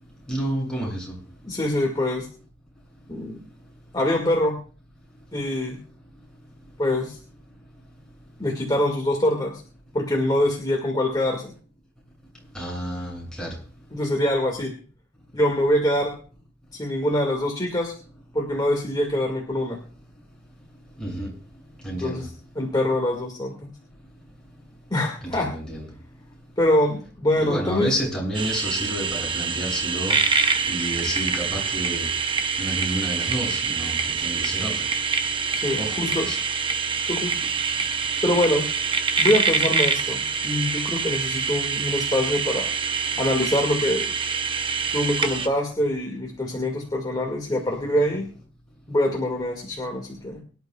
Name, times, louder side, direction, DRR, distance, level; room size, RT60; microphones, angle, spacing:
voice 1, 0.3-1.1 12.5-13.5 21.0-21.3 21.8-22.2 25.2-25.9 27.4-30.2 30.7-32.1 32.6-34.8 35.8-36.4, equal, 5° left, -4 dB, 7.2 m, -30 dB
voice 2, 1.4-2.3 3.1-3.4 3.9-4.6 5.3-5.8 6.8-7.2 8.4-9.6 9.9-11.5 13.9-14.7 15.3-16.1 16.8-17.9 18.3-19.8 22.0-22.3 22.6-23.7 24.9-25.5 26.6-27.9 35.5-36.3 37.1-37.3 38.2-38.6 39.2-42.7 43.2-44.1 44.9-48.3 48.9-50.4, left 1 dB, 20° left, 1 dB, 2.1 m, -24 dB
sound 1, 28.3-45.5, right 5 dB, 25° right, 0.8 m, -25 dB
24.0 x 11.5 x 2.4 m, 0.40 s
head